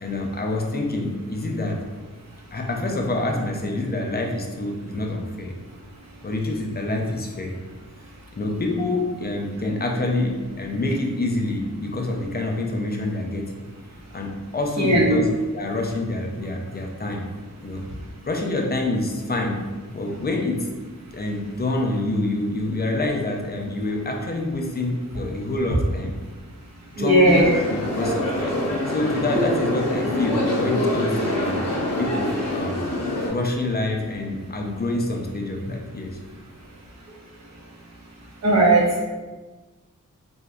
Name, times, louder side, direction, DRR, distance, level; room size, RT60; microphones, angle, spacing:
voice 1, 0.0-1.8 2.5-5.6 6.2-7.6 8.3-13.5 14.1-15.3 15.5-17.3 17.6-17.9 18.3-19.6 19.9-20.7 21.1-26.1 27.0-28.6 28.9-31.7 32.0-32.9 33.3-36.2, left 2 dB, 30° left, 2 dB, 0.4 m, -27 dB
voice 2, 14.8-15.2 27.0-27.5 38.4-39.0, right 1 dB, 50° right, -2 dB, 0.6 m, -17 dB
sound 1, 27.3-33.3, left 1 dB, 75° left, 0.6 m, -25 dB
2.6 x 2.1 x 2.3 m, 1.3 s
wide cardioid pair, 50°, 33 cm